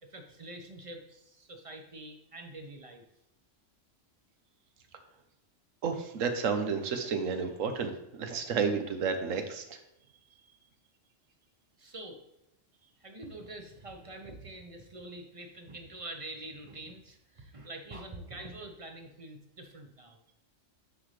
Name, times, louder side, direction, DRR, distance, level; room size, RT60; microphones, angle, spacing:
voice 1, 0.0-3.0 11.8-12.2 13.0-20.2, right 2 dB, 30° right, 4 dB, 0.7 m, -45 dB
voice 2, 5.8-7.9 8.2-9.8, right 5 dB, 90° right, 7 dB, 1.2 m, -31 dB
9.7 x 4.0 x 3.2 m, 0.89 s
omnidirectional pair, 1.3 m